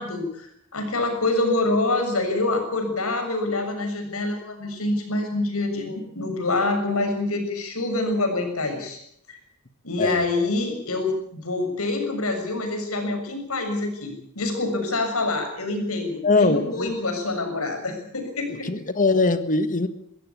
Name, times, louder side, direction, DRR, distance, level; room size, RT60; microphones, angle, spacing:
voice 1, 0.0-9.0 9.3-9.4 9.8-11.1 11.4-18.7, left 2 dB, 85° left, 6 dB, 6.8 m, -26 dB
voice 2, 16.2-16.9 18.6-19.9, left 3 dB, 40° left, 11 dB, 1.7 m, -21 dB
23.0 x 16.0 x 8.6 m, 0.69 s
head